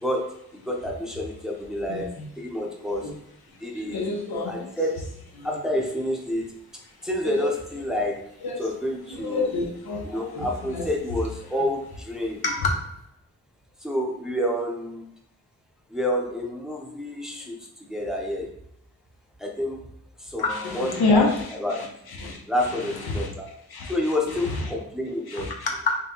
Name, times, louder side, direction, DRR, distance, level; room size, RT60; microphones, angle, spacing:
voice 1, 0.0-3.1 3.6-4.1 4.4-5.0 5.4-6.6 7.0-8.3 8.6-9.5 10.0-12.4 13.8-15.1 15.9-17.6 17.9-18.5 19.4-19.8 20.2-21.3 21.6-21.8 22.5-23.5 23.9-25.5, left 1 dB, ahead, -1 dB, 0.7 m, -29 dB
voice 2, 3.7-4.6 5.4-5.5 7.2-7.5 8.4-8.6 9.1-10.9 11.5-11.6 12.4-12.7 20.4-21.5 22.2-22.4 23.1-23.3 23.7-23.9 24.4-24.7 25.3-26.0, left 3 dB, 80° left, 0 dB, 0.9 m, -27 dB
5.6 x 2.2 x 3.0 m, 0.75 s
wide cardioid pair, 115°, 37 cm